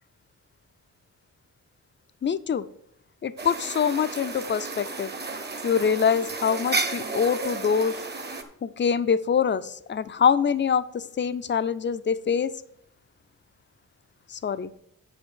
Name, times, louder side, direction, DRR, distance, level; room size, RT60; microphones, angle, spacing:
voice 1, 2.2-2.7 3.2-5.1 5.6-8.0 8.6-12.5 14.3-14.7, left 7 dB, 35° left, 14 dB, 0.4 m, -24 dB
sound 1, 3.4-8.4, right 3 dB, 30° right, 0.9 m, -32 dB
7.9 x 5.7 x 6.2 m, 0.72 s
wide cardioid pair, 170°, 32 cm